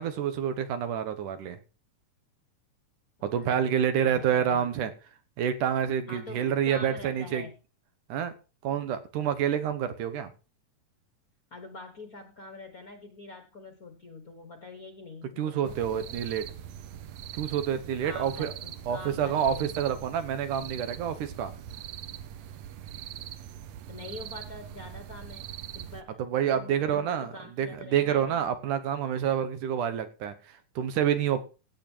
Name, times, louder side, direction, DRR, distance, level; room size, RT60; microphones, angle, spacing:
voice 1, 0.0-1.6 3.2-4.9 5.4-7.5 8.1-8.3 8.6-10.3 15.4-16.4 17.3-18.5 18.9-21.5 26.2-27.3 27.6-31.4, right 9 dB, 90° right, 10 dB, 2.8 m, -28 dB
voice 2, 3.3-4.7 6.1-7.5 11.5-16.2 18.0-19.8 23.9-25.5 25.7-28.4, left 2 dB, 45° left, 6 dB, 1.2 m, -45 dB
sound 1, 15.6-26.0, right 10 dB, 75° right, 2.0 m, -42 dB
16.0 x 8.0 x 4.5 m, 0.34 s
omnidirectional pair, 3.5 m